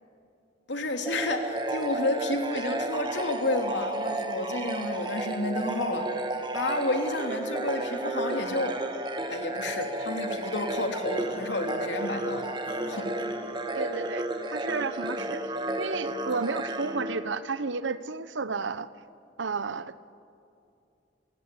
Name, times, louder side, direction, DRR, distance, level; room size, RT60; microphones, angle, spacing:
voice 1, 0.7-6.1 6.5-8.8 9.3-12.5 12.9-13.1, left 2 dB, 75° left, 4 dB, 2.8 m, -30 dB
sound 1, 1.1-17.8, right 1 dB, 25° right, 1.6 m, -33 dB
voice 2, 13.7-15.4 15.8-18.9 19.4-19.9, right 4 dB, 85° right, 15 dB, 0.9 m, -32 dB
29.5 x 17.0 x 9.7 m, 2.6 s
head